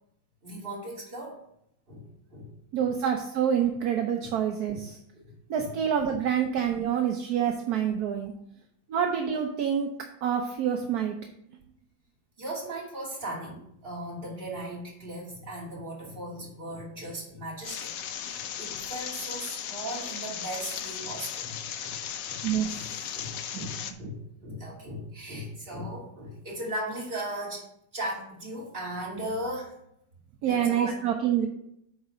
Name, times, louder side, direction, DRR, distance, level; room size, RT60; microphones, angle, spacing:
voice 1, 0.4-1.4 1.9-2.9 4.2-4.3 4.7-4.8 5.1-5.7 12.4-22.5 22.7-22.9 23.1-27.7 27.9-29.8 30.4-30.9, right 1 dB, 30° right, -4 dB, 2.5 m, -38 dB
voice 2, 2.7-5.0 5.5-8.3 8.9-9.9 10.2-11.2 22.4-22.7 23.5-23.7 30.4-31.5, right 8 dB, 65° right, 3 dB, 1.0 m, -27 dB
sound 1, 17.6-23.9, left 9 dB, 75° left, 0.8 m, -36 dB
8.8 x 4.0 x 5.5 m, 0.75 s
omnidirectional pair, 2.1 m